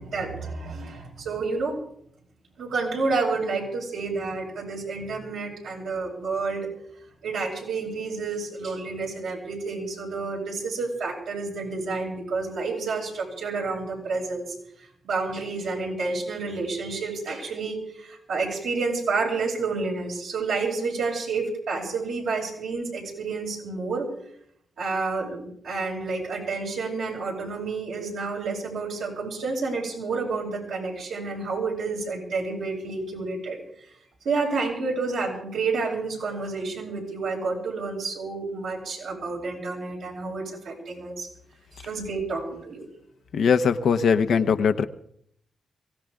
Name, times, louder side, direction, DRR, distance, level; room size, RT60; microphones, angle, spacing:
voice 1, 0.0-1.8 2.6-6.7 7.2-24.1 24.8-33.6 34.2-41.3 41.8-42.9, right 4 dB, 90° right, -4 dB, 6.9 m, -30 dB
voice 2, 43.3-44.8, left 6 dB, 75° left, 8 dB, 1.0 m, -21 dB
23.5 x 17.0 x 3.7 m, 0.69 s
supercardioid pair, 50°, 0 cm